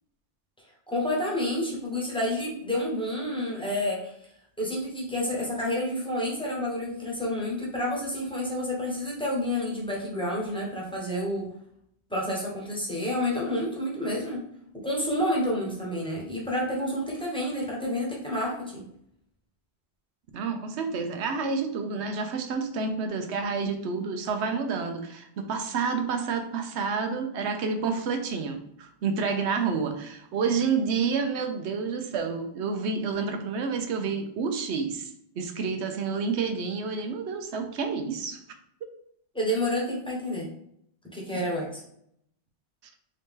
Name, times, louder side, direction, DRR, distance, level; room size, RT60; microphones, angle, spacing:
voice 1, 0.9-4.1 4.6-11.5 12.1-14.4 14.8-18.8 39.3-40.5 41.1-41.8, left 1 dB, 5° left, -4 dB, 1.0 m, -29 dB
voice 2, 20.3-38.4 41.3-41.4, right 5 dB, 75° right, 6 dB, 0.9 m, -29 dB
3.8 x 2.7 x 3.6 m, 0.72 s
omnidirectional pair, 1.2 m